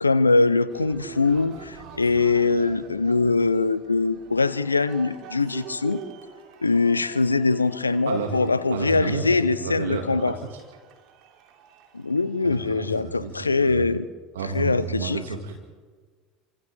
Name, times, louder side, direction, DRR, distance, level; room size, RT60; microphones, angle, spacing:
voice 1, 0.0-6.0 6.6-10.3 11.9-14.1 14.5-15.2, left 3 dB, 90° left, 15 dB, 0.7 m, -22 dB
Cheering, 0.7-12.7, right 8 dB, 55° right, 3.1 m, -45 dB
voice 2, 8.1-8.4 8.7-10.6 12.4-13.9 14.3-15.6, right 5 dB, 75° right, 3 dB, 2.0 m, -32 dB
29.5 x 25.5 x 3.5 m, 1.4 s
figure-of-eight pair, 75°, 0 cm